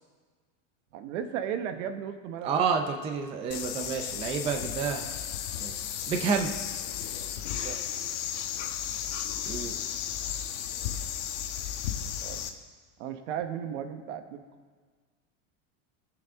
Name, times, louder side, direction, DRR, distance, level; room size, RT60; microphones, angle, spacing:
voice 1, 0.9-2.5 7.6-8.0 12.2-12.4 13.0-14.4, right 8 dB, 65° right, 8 dB, 1.2 m, -35 dB
voice 2, 2.4-5.1 5.6-5.7 6.1-6.5 9.5-9.8, right 6 dB, 15° right, 4 dB, 0.4 m, -29 dB
sound 1, 3.5-12.5, left 10 dB, 65° left, 1.1 m, -34 dB
22.0 x 7.6 x 3.6 m, 1.5 s
supercardioid pair, 160°, 39 cm